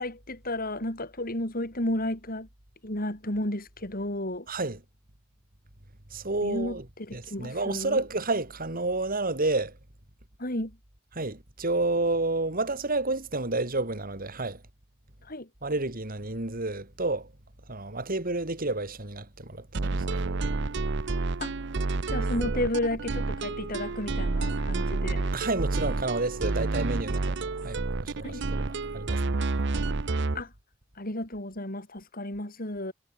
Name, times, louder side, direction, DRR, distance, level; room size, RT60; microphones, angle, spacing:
voice 1, 0.0-2.5 2.8-4.5 6.4-8.0 10.4-10.8 15.3-15.5 21.4-21.5 22.1-25.3 28.2-28.4 30.3-30.5 31.0-32.9, left 1 dB, 45° left, 6.4 m, -32 dB
voice 2, 4.5-4.8 6.1-6.8 7.1-9.7 11.1-14.6 15.6-17.3 17.7-20.2 25.3-29.2, right 2 dB, 45° right, 3.5 m, -30 dB
sound 1, 19.7-30.4, right 3 dB, 60° right, 0.8 m, -29 dB
head